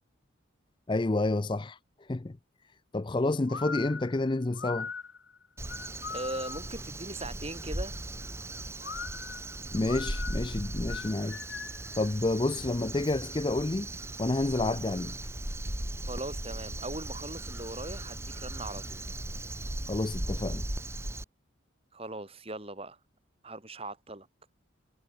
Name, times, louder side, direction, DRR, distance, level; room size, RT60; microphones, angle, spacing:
voice 1, 0.9-1.8 2.1-2.4 2.9-4.9 9.7-11.4 12.0-13.9 14.2-15.2 19.9-20.7, left 2 dB, 25° left, 0.4 m, -29 dB
sound 1, 3.5-6.8 8.8-11.9, left 5 dB, 70° left, 3.5 m, -40 dB
Crow, 5.6-21.2, right 1 dB, 15° right, 2.9 m, -38 dB
voice 2, 6.1-7.9 16.0-19.0 21.9-23.0 23.4-24.3, right 2 dB, 30° right, 2.8 m, -39 dB
sound 2, 13.5-20.5, right 1 dB, 50° right, 3.7 m, -49 dB
head